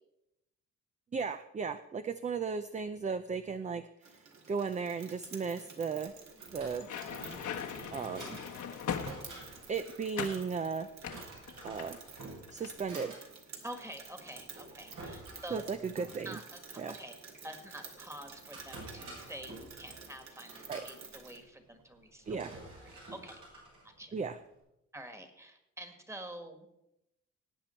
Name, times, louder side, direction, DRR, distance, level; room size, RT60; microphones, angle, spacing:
voice 1, 1.1-6.1 6.5-6.9 7.9-8.4 9.7-10.9 11.6-12.0 12.5-13.2 15.5-16.4 16.8-16.9 20.7-20.9 22.3-22.5 24.1-24.4, right 5 dB, 25° right, 10 dB, 0.5 m, -36 dB
Rain, 4.0-21.4, right 5 dB, 60° right, 2.2 m, -52 dB
Drawer open or close, 6.0-24.6, right 2 dB, 85° right, 6.1 m, -51 dB
sound 1, 6.7-9.6 10.1-10.4 11.0-12.2 12.5-12.8, left 8 dB, 75° left, 1.3 m, -40 dB
voice 2, 13.6-15.6 16.2-17.1 17.4-22.6 22.8-24.1 24.9-26.7, right 1 dB, 10° right, 6 dB, 1.7 m, -47 dB
19.0 x 8.8 x 4.4 m, 0.86 s
cardioid pair, 135°, 30 cm